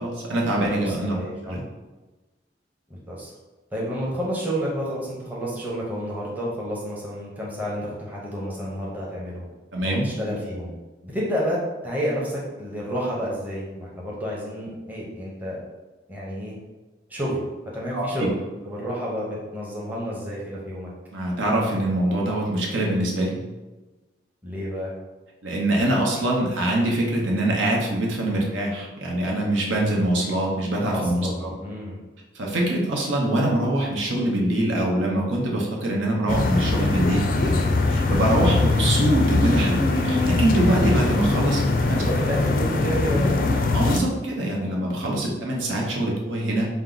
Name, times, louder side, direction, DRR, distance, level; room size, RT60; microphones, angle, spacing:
voice 1, 0.0-1.2 1.5-1.6 9.7-10.1 17.9-18.3 21.1-23.4 25.4-31.5 32.3-37.5 37.9-42.1 43.7-46.7, right 1 dB, 85° right, -2 dB, 0.8 m, -24 dB
voice 2, 0.7-1.6 2.9-3.3 3.7-9.5 9.8-10.7 11.0-15.6 16.1-16.5 17.1-17.4 17.7-20.9 24.4-24.9 30.9-32.0 41.9-43.3, equal, 10° right, -5 dB, 0.7 m, -30 dB
sound 1, 36.3-44.0, left 3 dB, 45° left, 0.3 m, -22 dB
4.4 x 2.1 x 3.8 m, 1.1 s
head